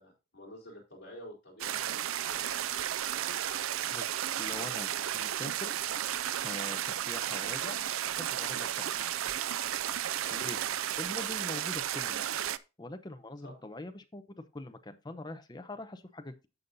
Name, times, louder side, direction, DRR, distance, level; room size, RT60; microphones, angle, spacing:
voice 1, 0.0-3.6 10.2-10.4 13.4-13.5, equal, 55° left, -1 dB, 3.7 m, -50 dB
sound 1, 1.6-12.6, right 11 dB, 85° right, 0.4 m, -33 dB
voice 2, 4.4-5.7 6.4-7.8 8.1-9.0 10.3-10.6 11.0-12.2 12.8-16.5, left 2 dB, 20° left, 8 dB, 0.7 m, -43 dB
14.5 x 5.4 x 2.6 m, 0.28 s
head